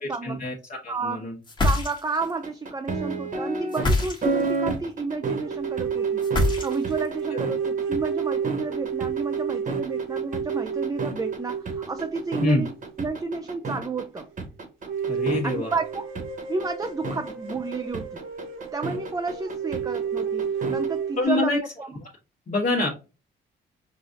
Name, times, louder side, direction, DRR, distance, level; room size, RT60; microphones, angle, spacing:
voice 1, 0.0-1.3 12.4-12.6 15.1-15.7 21.2-21.6 22.5-22.9, left 2 dB, 40° left, 1.2 m, -25 dB
voice 2, 0.9-1.2 1.6-12.7 13.0-14.3 15.4-16.1 16.5-18.2 18.7-21.9, right 4 dB, 20° right, 0.4 m, -31 dB
sound 1, 1.4-2.3 3.7-4.6 6.2-7.1, left 2 dB, 25° left, 1.3 m, -24 dB
sound 2, 2.2-20.9, right 3 dB, 40° right, 1.1 m, -31 dB
sound 3, 5.2-13.9 14.2-14.3 14.8-21.2, right 6 dB, 80° right, 0.9 m, -31 dB
5.0 x 2.4 x 2.6 m
cardioid pair, 90°, 20 cm